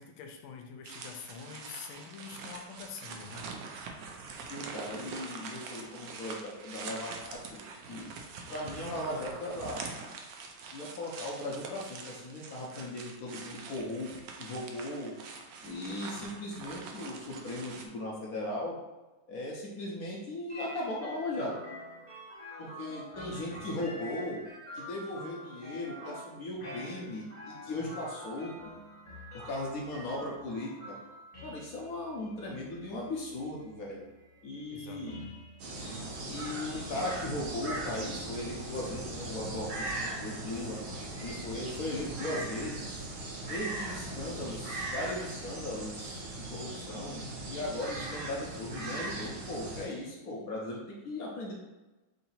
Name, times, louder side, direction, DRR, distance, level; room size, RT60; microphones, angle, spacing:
voice 1, 0.0-3.5 34.7-35.4, left 5 dB, 85° left, 4 dB, 1.4 m, -46 dB
sound 1, 0.8-17.9, right 4 dB, 85° right, 0.8 m, -44 dB
voice 2, 4.5-8.1 8.5-9.9 10.7-14.1 14.4-15.2 15.6-18.8 19.3-21.5 22.6-24.4 24.7-28.5 29.3-31.0 31.4-34.0 34.4-35.2 36.3-40.8 41.2-43.0 43.5-46.2 46.5-51.5, left 1 dB, 60° left, -3 dB, 1.0 m, -38 dB
sound 2, 20.5-39.2, equal, 35° left, 0.5 m, -48 dB
sound 3, 35.6-49.9, right 2 dB, 60° right, 1.3 m, -39 dB
3.8 x 2.7 x 4.1 m, 1.1 s
omnidirectional pair, 2.2 m